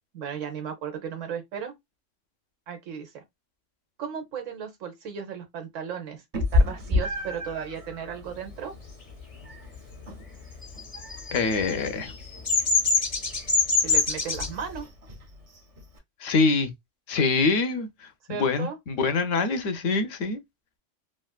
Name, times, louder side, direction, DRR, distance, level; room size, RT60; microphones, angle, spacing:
voice 1, 0.1-1.7 2.7-3.2 4.0-8.7 13.8-14.8 18.3-18.8, right 7 dB, 80° right, 1.2 m, -35 dB
Meow, 6.3-16.0, left 2 dB, 35° right, 0.6 m, -32 dB
Bird vocalization bird call bird song, 10.8-14.5, left 4 dB, 40° left, 0.6 m, -24 dB
voice 2, 11.3-12.1 16.2-16.7 17.1-20.4, left 4 dB, 85° left, 1.0 m, -25 dB
3.3 x 2.4 x 2.3 m
omnidirectional pair, 1.3 m